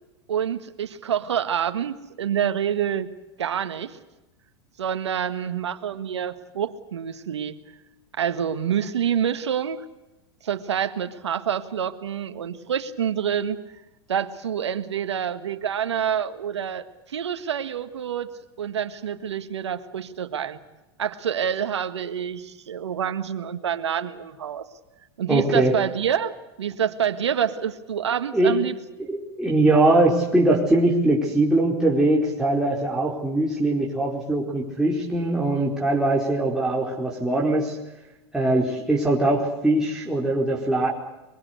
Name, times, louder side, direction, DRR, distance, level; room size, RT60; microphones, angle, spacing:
voice 1, 0.3-3.1 3.4-4.0 4.8-7.6 8.2-9.8 10.4-13.6 14.1-18.3 18.6-20.6 21.0-24.7 25.2-28.7, right 8 dB, 85° right, 9 dB, 1.7 m, -27 dB
voice 2, 25.3-25.7 28.3-28.6 29.0-37.8 38.3-40.9, right 2 dB, 5° right, -4 dB, 4.6 m, -21 dB
23.5 x 22.5 x 8.1 m, 0.99 s
hypercardioid pair, 105°, 14 cm